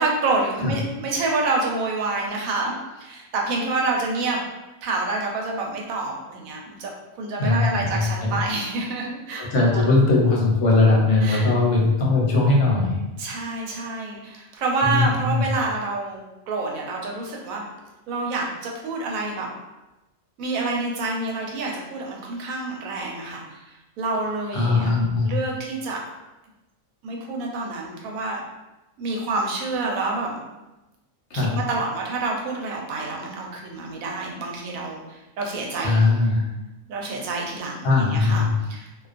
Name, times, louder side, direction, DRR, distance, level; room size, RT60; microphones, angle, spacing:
voice 1, 0.0-4.4 4.8-10.0 11.2-11.5 13.2-17.6 18.1-19.5 20.4-24.9 25.2-26.0 27.0-28.4 29.0-30.4 31.3-36.1 36.9-38.9, right 3 dB, 80° right, -1 dB, 1.0 m, -28 dB
voice 2, 7.4-8.3 9.4-13.0 14.8-15.5 24.5-25.3 31.3-31.5 35.8-36.4 37.8-38.5, left 3 dB, 80° left, -3 dB, 1.1 m, -20 dB
2.4 x 2.2 x 2.4 m, 1.0 s
omnidirectional pair, 1.4 m